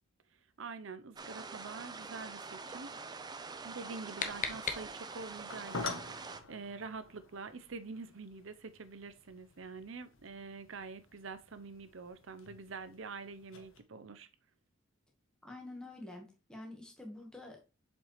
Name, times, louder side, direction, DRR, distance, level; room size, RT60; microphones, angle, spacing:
voice 1, 0.6-2.9 3.6-14.3, right 4 dB, 65° right, 0.7 m, -46 dB
sound 1, 1.2-6.4, right 4 dB, 20° right, 0.5 m, -45 dB
sound 2, 3.7-5.4, left 5 dB, 40° left, 0.9 m, -40 dB
sound 3, 4.9-13.8, left 3 dB, 80° left, 1.2 m, -48 dB
voice 2, 15.4-17.6, left 2 dB, 5° left, 1.4 m, -47 dB
7.2 x 5.3 x 3.2 m
head